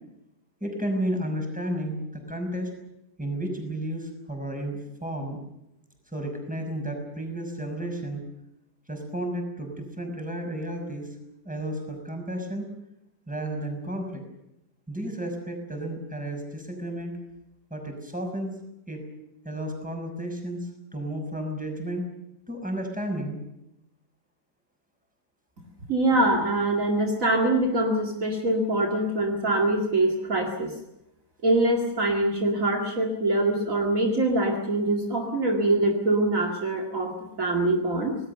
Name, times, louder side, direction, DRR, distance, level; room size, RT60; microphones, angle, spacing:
voice 1, 0.6-2.7 3.2-5.4 6.1-8.2 8.9-11.2 11.4-12.7 13.3-14.2 14.9-17.1 17.7-18.5 18.9-19.0 19.4-22.0 22.5-23.4, right 1 dB, 5° right, 3 dB, 5.9 m, -32 dB
voice 2, 25.9-30.7 31.4-38.2, right 1 dB, 55° right, 1 dB, 2.7 m, -24 dB
26.5 x 19.5 x 6.8 m, 0.85 s
omnidirectional pair, 1.7 m